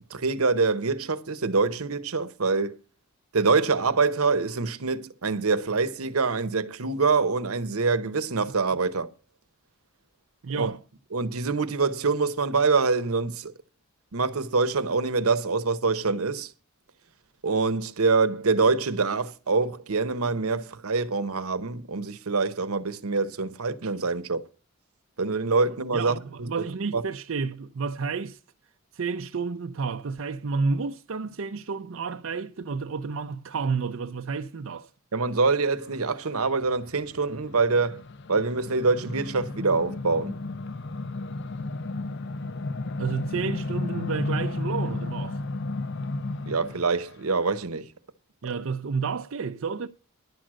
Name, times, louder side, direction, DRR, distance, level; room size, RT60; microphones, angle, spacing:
voice 1, 0.1-2.8 3.3-9.1 10.5-10.7 11.1-13.5 14.1-16.5 17.4-24.4 25.2-26.5 26.9-27.0 35.1-38.0 38.3-40.3 46.5-47.9, right 4 dB, 85° right, 0.9 m, -25 dB
voice 2, 10.4-10.8 25.9-28.4 28.9-34.9 43.0-45.4 48.4-49.9, right 5 dB, 65° right, 0.5 m, -30 dB
sound 1, 36.4-46.9, left 2 dB, 55° left, 0.5 m, -33 dB
11.0 x 6.2 x 7.5 m
head